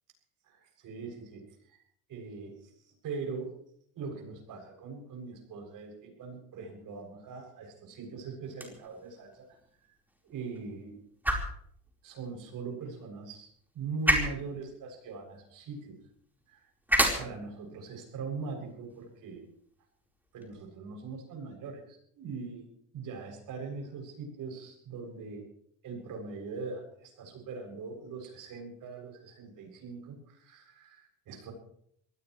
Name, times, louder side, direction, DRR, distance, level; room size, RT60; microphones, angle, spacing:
voice 1, 0.4-1.8 2.1-3.5 4.0-9.6 10.2-11.0 12.0-16.0 16.5-16.7 17.2-19.4 20.3-22.7 22.9-25.4 25.8-31.5, right 4 dB, 60° right, 2 dB, 7.7 m, -41 dB
sound 1, 8.4-20.5, right 1 dB, 5° right, 4.4 m, -35 dB
22.5 x 17.5 x 3.3 m, 0.65 s
supercardioid pair, 80°, 37 cm